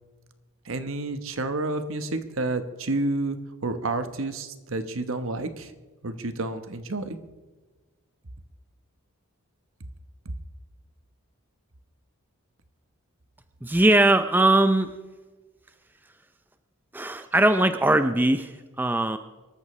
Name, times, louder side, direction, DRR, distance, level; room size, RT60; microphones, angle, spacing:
voice 1, 0.6-5.7 6.0-7.2, right 2 dB, 70° right, 9 dB, 1.1 m, -30 dB
voice 2, 13.6-15.0 16.9-19.2, right 2 dB, 10° right, 9 dB, 0.4 m, -20 dB
24.0 x 13.5 x 3.2 m, 1.2 s
head